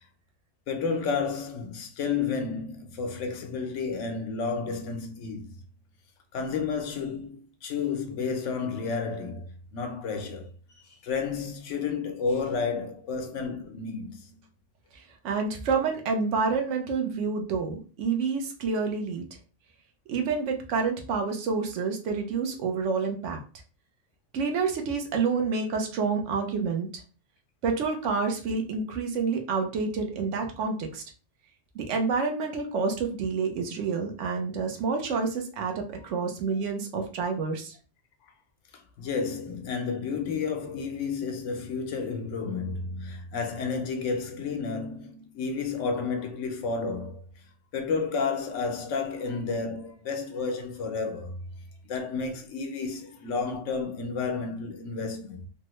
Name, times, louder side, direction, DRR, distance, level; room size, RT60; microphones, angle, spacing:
voice 1, 0.7-5.5 6.3-10.5 10.9-14.4 38.7-47.2 47.7-51.4 51.9-55.5, left 5 dB, 90° left, 1.0 m, -31 dB
voice 2, 14.9-19.2 20.1-23.4 24.3-27.0 27.6-31.0 31.7-37.8, right 5 dB, 85° right, 1.0 m, -28 dB
3.4 x 2.0 x 3.0 m
omnidirectional pair, 1.2 m